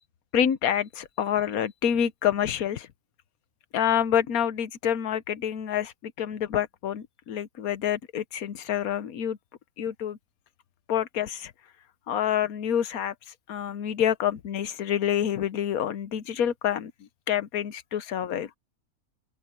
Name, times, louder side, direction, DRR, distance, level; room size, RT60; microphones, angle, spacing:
voice 1, 0.3-2.9 3.7-9.4 9.8-10.2 10.9-11.5 12.1-13.1 13.5-16.9 17.3-18.5, left 9 dB, 85° left, 1.4 m, -27 dB
omnidirectional pair, 1.5 m